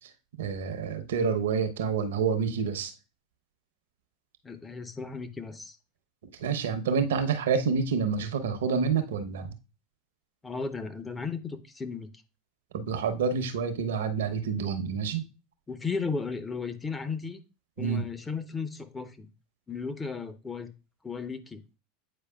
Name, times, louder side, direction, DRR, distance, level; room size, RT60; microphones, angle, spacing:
voice 1, 0.4-2.9 6.4-9.5 12.7-15.2 17.8-18.0, right 6 dB, 75° right, 0.9 m, -28 dB
voice 2, 4.4-5.8 10.4-12.1 15.7-17.4 17.8-19.3 19.7-20.7 21.0-21.6, left 4 dB, 15° left, 0.9 m, -35 dB
8.6 x 4.9 x 2.4 m
hypercardioid pair, 85°, 0 cm